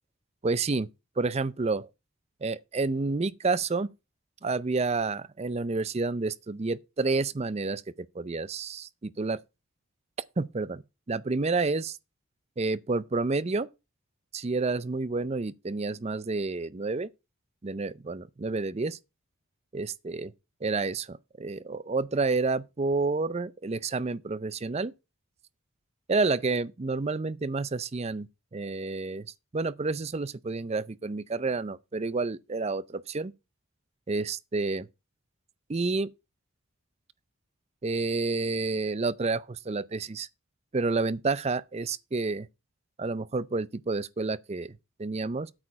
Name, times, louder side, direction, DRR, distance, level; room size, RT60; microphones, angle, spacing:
voice 1, 0.4-0.9 1.2-1.9 2.4-3.9 4.4-9.4 10.4-10.8 11.1-12.0 12.6-13.7 14.3-17.1 17.6-19.0 19.7-20.3 20.6-24.9 26.1-29.3 29.5-33.3 34.1-34.9 35.7-36.1 37.8-40.3 40.7-42.5 43.0-44.7 45.0-45.5, right 3 dB, 30° right, 0.5 m, -29 dB
8.7 x 6.5 x 5.6 m
head